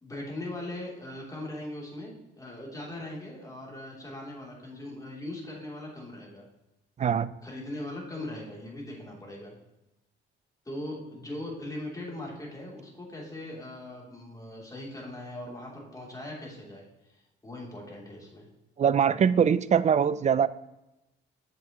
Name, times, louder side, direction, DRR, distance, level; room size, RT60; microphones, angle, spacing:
voice 1, 0.0-6.5 7.4-9.6 10.6-18.5, left 1 dB, 15° left, -2 dB, 3.1 m, -40 dB
voice 2, 7.0-7.3 18.8-20.5, right 7 dB, 35° right, 17 dB, 0.4 m, -22 dB
7.9 x 7.2 x 3.0 m, 0.94 s
cardioid pair, 90°, 20 cm